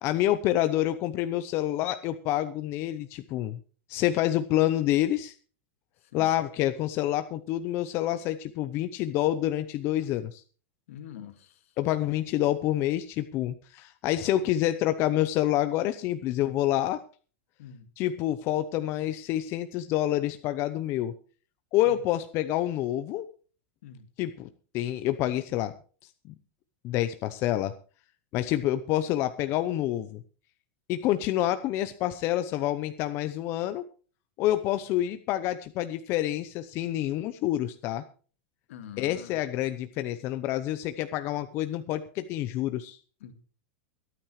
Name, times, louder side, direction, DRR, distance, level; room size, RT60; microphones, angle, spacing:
voice 1, 0.0-3.6 3.9-5.3 6.1-10.4 11.8-17.0 18.0-21.1 21.7-23.3 24.2-24.5 24.7-25.7 26.8-27.7 28.3-30.2 30.9-33.8 34.4-38.0 39.0-43.0, left 13 dB, 35° left, 0.7 m, -27 dB
voice 2, 6.0-6.3 10.9-11.7 17.6-17.9 21.8-22.0 23.8-24.1 38.7-39.4 43.2-43.3, left 9 dB, 70° left, 2.2 m, -45 dB
23.5 x 9.1 x 3.2 m
supercardioid pair, 155°, 7 cm